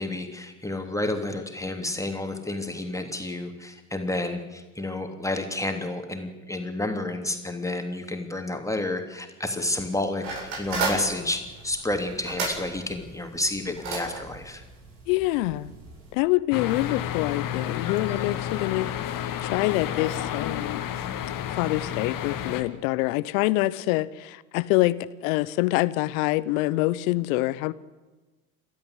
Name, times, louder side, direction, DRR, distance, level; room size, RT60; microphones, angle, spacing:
voice 1, 0.0-14.6, left 2 dB, 5° left, 5 dB, 3.2 m, -30 dB
sound 1, 10.2-16.1, right 3 dB, 65° right, 7.8 m, -34 dB
voice 2, 15.1-15.7 16.1-18.9 19.4-20.8 21.6-25.0 25.2-27.7, left 18 dB, 65° left, 18 dB, 1.0 m, -25 dB
sound 2, 16.5-22.6, left 10 dB, 45° left, 2.3 m, -31 dB
29.0 x 13.0 x 8.3 m, 1.2 s
hypercardioid pair, 75°, 44 cm